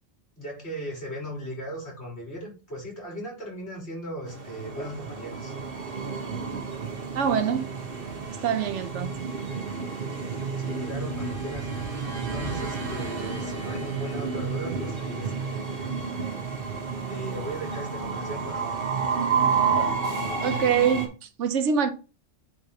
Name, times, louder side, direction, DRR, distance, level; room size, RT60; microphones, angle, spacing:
voice 1, 0.4-5.6 10.6-11.7 12.1-15.8 17.1-18.8, equal, 60° left, 4.1 m, -37 dB
Train, 4.3-21.1, right 5 dB, 50° right, 1.5 m, -30 dB
voice 2, 7.1-7.7 8.3-9.3 20.4-21.9, right 7 dB, 75° right, 1.1 m, -25 dB
9.4 x 4.5 x 2.9 m
omnidirectional pair, 1.2 m